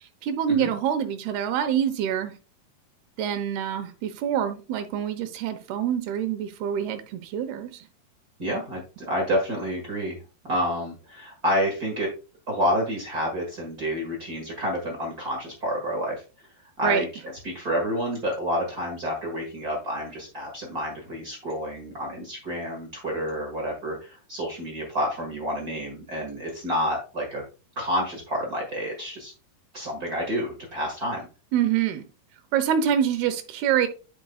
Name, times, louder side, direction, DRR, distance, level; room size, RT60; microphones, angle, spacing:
voice 1, 0.2-2.3 3.2-7.9 16.8-17.0 31.5-32.0 32.5-33.9, right 9 dB, 80° right, 8 dB, 2.8 m, -26 dB
voice 2, 8.4-10.2 10.4-12.1 12.5-16.5 16.8-27.4 27.7-29.3 29.7-31.3, equal, 45° right, -1 dB, 1.1 m, -29 dB
10.5 x 5.2 x 2.3 m, 0.33 s
omnidirectional pair, 4.6 m